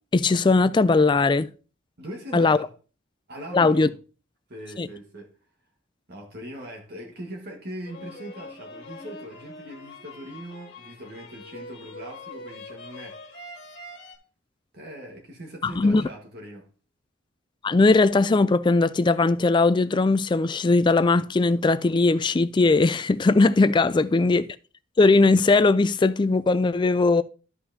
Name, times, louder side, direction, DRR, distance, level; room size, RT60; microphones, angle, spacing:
voice 1, 0.1-1.5 2.3-2.6 3.5-3.9 4.8-4.9 15.6-16.1 17.6-24.5 25.0-27.2, left 3 dB, 20° left, 0.3 m, -19 dB
voice 2, 2.0-2.7 3.3-3.9 4.5-5.3 6.1-13.4 14.7-16.7, equal, 50° right, 1.6 m, -40 dB
sound 1, 7.8-14.2, left 2 dB, 55° left, 1.9 m, -43 dB
12.5 x 5.6 x 2.7 m
head